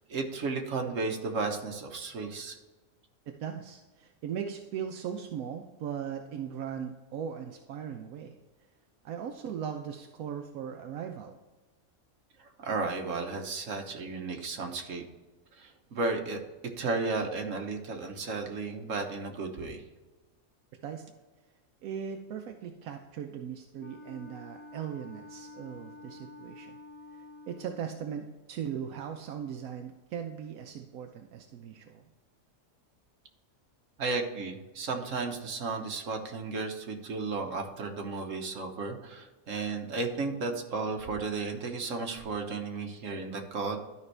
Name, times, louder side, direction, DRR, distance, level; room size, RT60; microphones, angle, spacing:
voice 1, 0.1-2.6 12.6-15.0 15.6-16.4 16.8-19.8 34.0-43.8, right 3 dB, 65° right, 3 dB, 1.4 m, -34 dB
voice 2, 3.4-8.4 9.0-11.4 20.8-21.1 21.8-26.8 27.1-32.0, right 8 dB, 80° right, 4 dB, 1.1 m, -38 dB
Wind instrument woodwind instrument, 23.8-28.0, left 2 dB, 85° left, 1.5 m, -49 dB
12.0 x 5.3 x 3.3 m, 1.2 s
omnidirectional pair, 1.5 m